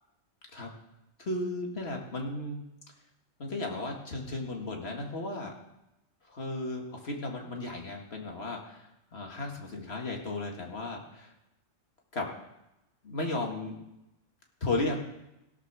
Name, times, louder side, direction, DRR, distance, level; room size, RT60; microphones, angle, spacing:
voice 1, 1.2-2.6 3.4-5.5 6.2-11.3 12.1-12.3 13.0-13.8 14.6-15.0, left 2 dB, 55° left, 1 dB, 2.2 m, -35 dB
17.0 x 6.0 x 6.3 m, 0.90 s
omnidirectional pair, 1.3 m